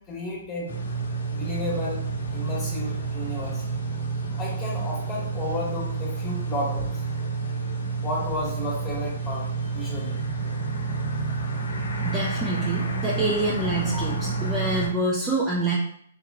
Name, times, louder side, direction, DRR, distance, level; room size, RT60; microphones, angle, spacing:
voice 1, 0.1-0.7 1.3-2.0 2.3-3.6 4.4-7.0 8.0-9.5 9.7-10.2 13.9-14.1, left 1 dB, 15° left, -4 dB, 1.4 m, -32 dB
sound 1, 0.7-14.9, right 4 dB, 70° left, 0.7 m, -29 dB
voice 2, 12.0-15.7, right 2 dB, 15° right, -4 dB, 0.5 m, -26 dB
3.6 x 2.9 x 2.3 m, 0.65 s
figure-of-eight pair, 125°, 0 cm